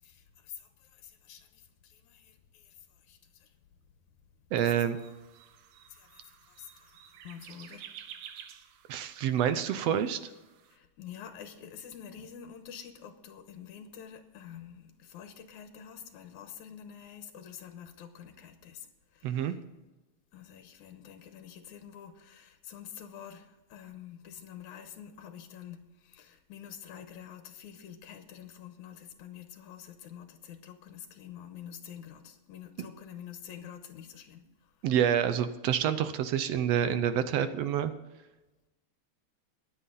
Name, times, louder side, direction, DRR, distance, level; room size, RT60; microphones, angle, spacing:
voice 1, 0.0-3.6 5.9-7.9 10.7-19.6 20.3-34.9, left 9 dB, 85° left, 7 dB, 2.5 m, -48 dB
voice 2, 4.5-5.0 8.9-10.2 19.2-19.5 34.8-37.9, right 9 dB, 70° right, 11 dB, 1.7 m, -27 dB
sound 1, 4.6-10.8, right 9 dB, 90° right, 2.4 m, -52 dB
22.5 x 8.4 x 3.9 m, 1.1 s
omnidirectional pair, 3.3 m